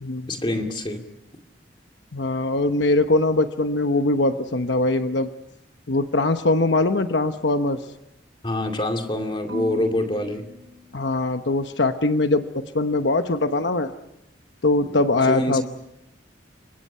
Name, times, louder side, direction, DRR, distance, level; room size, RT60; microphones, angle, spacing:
voice 1, 0.3-1.0 8.4-10.5 15.3-15.6, left 1 dB, 25° left, 4 dB, 2.4 m, -25 dB
voice 2, 2.1-5.3 5.9-7.8 10.9-13.9 14.6-15.6, left 2 dB, 70° left, 8 dB, 1.0 m, -22 dB
Marimba xylophone / Wood, 9.5-11.7, left 1 dB, 70° right, 7.7 m, -39 dB
30.0 x 24.5 x 5.6 m, 0.82 s
head